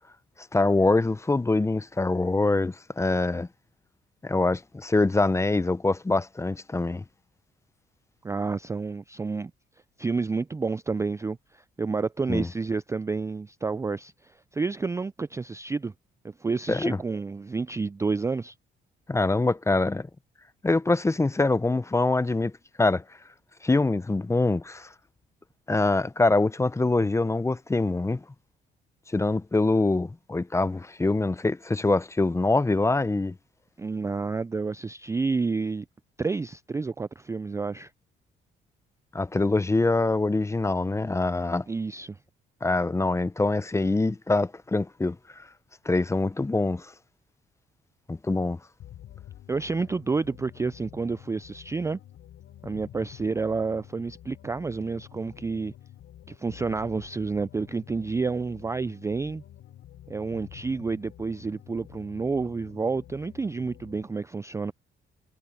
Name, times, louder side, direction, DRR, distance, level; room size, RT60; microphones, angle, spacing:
voice 1, 0.5-3.5 4.2-7.0 12.3-12.5 16.7-17.0 19.1-20.1 20.6-22.5 22.8-23.0 23.6-24.9 25.7-28.2 29.1-33.3 39.1-41.7 42.6-45.5 45.8-46.9 48.1-48.6, left 2 dB, 15° left, 0.7 m, -24 dB
voice 2, 8.2-9.5 10.0-15.9 16.4-18.5 33.8-35.9 36.2-37.9 41.7-42.2 49.5-52.0 52.6-55.7 56.3-59.4 60.1-64.7, right 4 dB, 15° right, 0.3 m, -29 dB
sound 1, 48.8-64.2, left 12 dB, 80° left, 3.0 m, -48 dB
cardioid pair, 90°, 20 cm